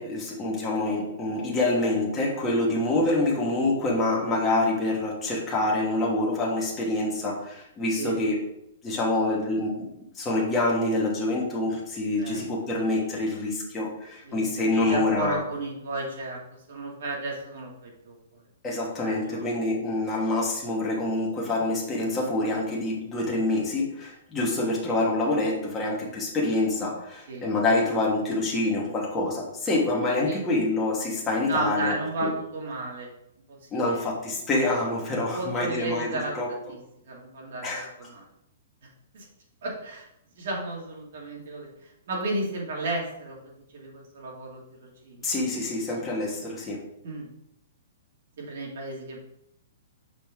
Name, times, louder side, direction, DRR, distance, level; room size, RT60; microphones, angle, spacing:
voice 1, 0.0-8.4 8.8-9.8 10.1-15.4 18.6-32.0 32.2-32.3 33.7-36.5 37.6-37.9 45.2-46.8, left 2 dB, 10° left, -4 dB, 1.3 m, -26 dB
voice 2, 14.2-16.4 16.7-18.4 19.0-19.5 24.5-24.6 27.3-27.5 30.2-30.4 31.5-33.1 33.5-33.6 33.9-34.1 35.3-36.3 36.7-36.8 37.0-38.3 39.1-39.3 39.6-40.1 40.4-45.3 47.0-47.3 48.4-49.2, right 2 dB, 50° right, -2 dB, 2.1 m, -33 dB
6.4 x 5.3 x 3.5 m, 0.80 s
hypercardioid pair, 175°, 0 cm